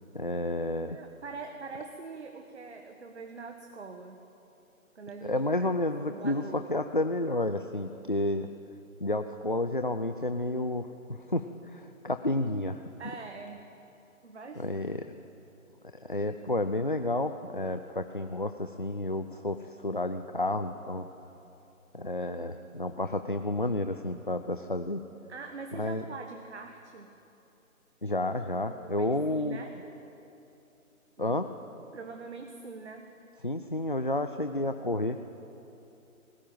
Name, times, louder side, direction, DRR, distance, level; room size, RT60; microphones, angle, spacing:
voice 1, 0.1-1.0 5.2-8.5 9.0-12.8 14.6-15.1 15.9-21.1 21.9-25.0 25.7-26.0 28.0-29.6 31.2-31.5 33.4-35.3, left 1 dB, 35° left, 8 dB, 0.5 m, -31 dB
voice 2, 0.9-4.2 4.9-5.7 6.0-6.6 13.0-13.7 14.2-14.8 25.3-27.1 28.7-29.8 31.9-33.1, right 4 dB, 50° right, 4 dB, 1.6 m, -43 dB
19.5 x 18.5 x 9.1 m, 2.9 s
figure-of-eight pair, 170°, 43 cm